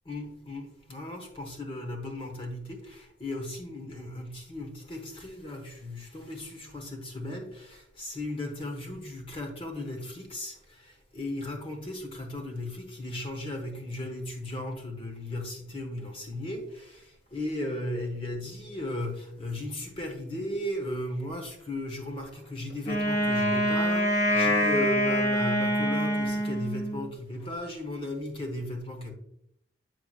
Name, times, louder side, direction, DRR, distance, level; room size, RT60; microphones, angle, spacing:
voice 1, 0.0-29.1, left 1 dB, 30° left, 1.0 m, -36 dB
Wind instrument woodwind instrument, 22.8-27.1, equal, 60° left, 1.8 m, -25 dB
7.7 x 5.6 x 2.4 m
head